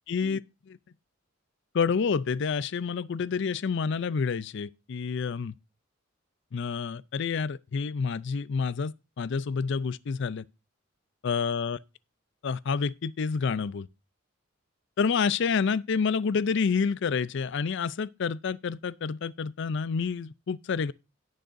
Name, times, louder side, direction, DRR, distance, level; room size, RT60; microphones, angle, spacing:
voice 1, 0.1-0.4 0.7-0.8 1.7-5.5 6.5-10.4 11.2-11.8 12.4-13.9 15.0-20.9, left 5 dB, 65° left, 0.4 m, -28 dB
17.0 x 6.4 x 2.6 m
head